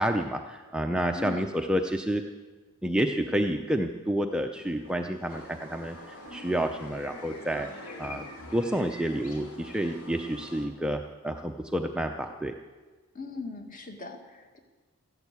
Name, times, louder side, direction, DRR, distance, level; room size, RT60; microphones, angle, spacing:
voice 1, 0.0-2.2 2.8-8.2 8.5-12.5, right 1 dB, 5° right, 4 dB, 0.5 m, -29 dB
voice 2, 1.2-1.5 13.1-14.6, left 4 dB, 35° left, 4 dB, 1.8 m, -39 dB
sound 1, 4.6-10.7, equal, 55° left, 2.9 m, -50 dB
sound 2, 5.3-10.7, left 2 dB, 90° left, 2.8 m, -46 dB
14.5 x 12.0 x 8.2 m, 1.3 s
head